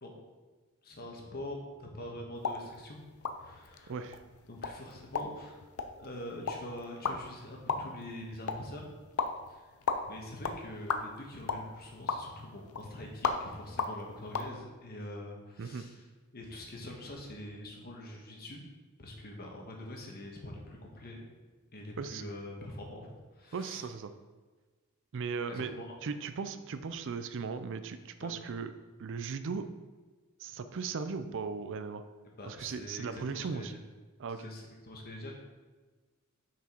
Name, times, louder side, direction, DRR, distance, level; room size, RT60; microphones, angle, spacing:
voice 1, 0.8-3.0 3.3-3.9 4.5-5.6 6.0-8.9 9.5-9.8 10.0-16.0 16.3-18.6 19.0-21.2 21.7-23.8 25.5-26.0 28.2-28.3 30.5-30.6 32.2-33.8 34.3-35.3, left 1 dB, 45° left, 1 dB, 1.3 m, -44 dB
sound 1, 2.3-14.5, left 4 dB, 70° left, 0.6 m, -38 dB
voice 2, 3.9-4.2 15.6-15.9 22.0-22.2 23.5-24.1 25.1-25.8 26.0-28.7 29.0-29.7 30.4-32.0 32.5-33.7 34.2-34.5, right 5 dB, 55° right, 10 dB, 0.4 m, -37 dB
6.0 x 5.9 x 4.4 m, 1.3 s
head